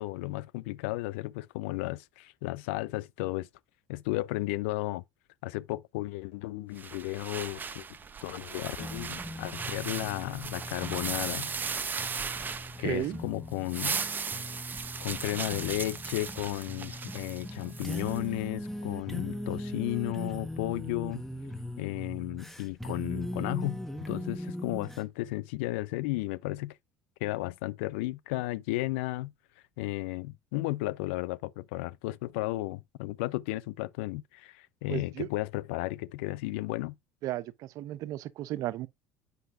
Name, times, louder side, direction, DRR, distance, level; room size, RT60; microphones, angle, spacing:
voice 1, 0.0-3.5 3.9-5.0 5.4-7.9 8.2-11.7 12.8-14.2 15.0-21.2 21.8-26.7 27.2-29.3 29.8-36.9, left 19 dB, 80° left, 0.4 m, -34 dB
sound 1, 6.8-13.2 13.5-18.2, right 5 dB, 30° right, 0.7 m, -37 dB
sound 2, 8.8-25.1, left 1 dB, 5° left, 1.1 m, -40 dB
voice 2, 12.8-13.2 34.9-35.3 37.2-38.9, right 15 dB, 60° right, 0.5 m, -34 dB
8.0 x 5.4 x 2.4 m
hypercardioid pair, 70°, 6 cm